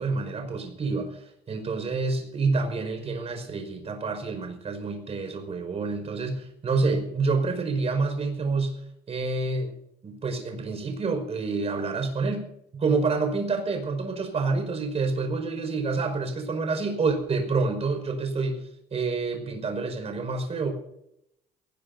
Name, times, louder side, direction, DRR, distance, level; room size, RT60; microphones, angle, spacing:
voice 1, 0.0-8.7 9.1-9.7 10.0-20.7, right 4 dB, 40° right, 5 dB, 5.3 m, -28 dB
22.5 x 19.5 x 2.7 m, 0.78 s
cardioid pair, 110°, 17 cm